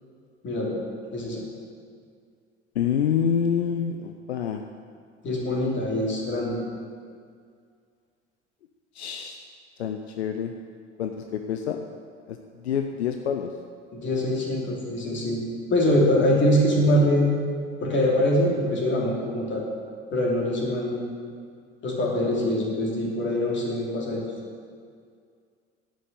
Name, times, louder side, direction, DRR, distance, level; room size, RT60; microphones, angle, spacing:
voice 1, 1.1-1.4 5.2-6.6 13.9-15.4 15.7-17.3 17.8-19.6 20.1-21.0 21.8-24.2, left 1 dB, 35° left, -3 dB, 2.9 m, -23 dB
voice 2, 2.8-4.6 8.9-9.4 9.8-10.5 11.0-11.8 12.3-13.5, left 8 dB, 75° left, 5 dB, 0.6 m, -27 dB
11.0 x 6.4 x 6.8 m, 2.2 s
figure-of-eight pair, 65°, 33 cm